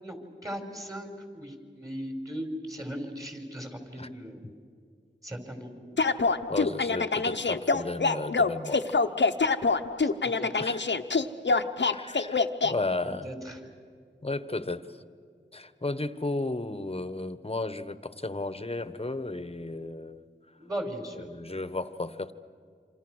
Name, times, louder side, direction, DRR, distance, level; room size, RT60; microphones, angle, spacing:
voice 1, 0.0-1.1 1.3-4.4 5.2-5.8 10.0-10.7 13.0-13.6 20.6-21.3, equal, 15° right, 4 dB, 5.1 m, -38 dB
sound 1, 6.0-12.7, left 4 dB, 65° left, 1.0 m, -25 dB
voice 2, 6.5-8.8 10.6-10.9 11.9-13.3 14.2-15.0 15.5-20.2 21.2-22.3, left 2 dB, 30° left, 12 dB, 1.3 m, -34 dB
27.5 x 26.5 x 6.4 m, 2.2 s
wide cardioid pair, 40°, 20 cm